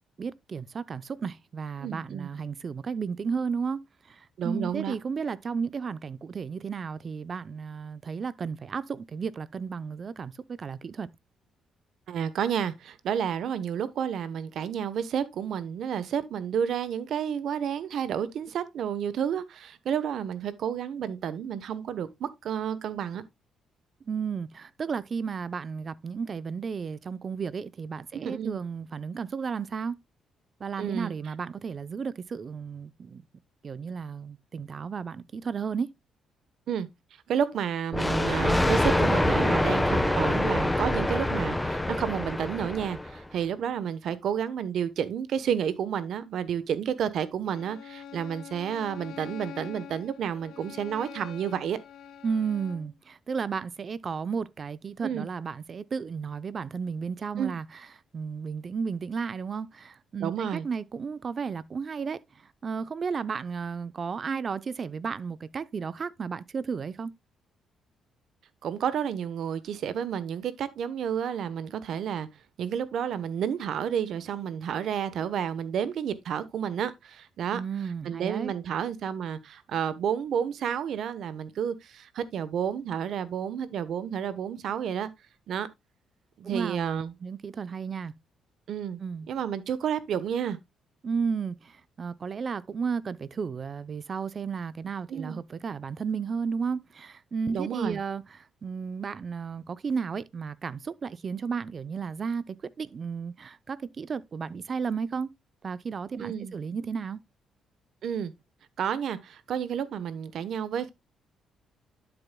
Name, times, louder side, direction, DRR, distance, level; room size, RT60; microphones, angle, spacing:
voice 1, 0.2-3.8 4.1-11.1 24.1-30.0 30.6-33.2 33.6-35.9 52.2-57.8 58.1-62.2 62.6-67.1 77.5-78.5 86.4-88.1 89.0-89.3 91.0-105.3 105.6-107.2, right 5 dB, 45° right, 0.6 m, -33 dB
voice 2, 1.8-2.3 4.4-4.9 12.1-23.2 28.2-28.6 30.8-31.1 36.7-36.9 37.3-51.8 55.0-55.3 57.4-57.5 60.2-60.7 68.6-72.3 72.6-77.6 78.0-85.1 85.5-85.7 86.4-87.1 88.7-89.0 89.3-90.6 95.1-95.4 97.5-98.0 106.2-106.5 108.0-108.3 108.8-110.9, right 8 dB, 70° right, 1.0 m, -31 dB
Thunder, 37.9-43.3, left 1 dB, 10° left, 1.0 m, -25 dB
Bowed string instrument, 47.5-52.9, left 8 dB, 70° left, 1.8 m, -44 dB
12.0 x 7.0 x 2.2 m
cardioid pair, 90°, 0 cm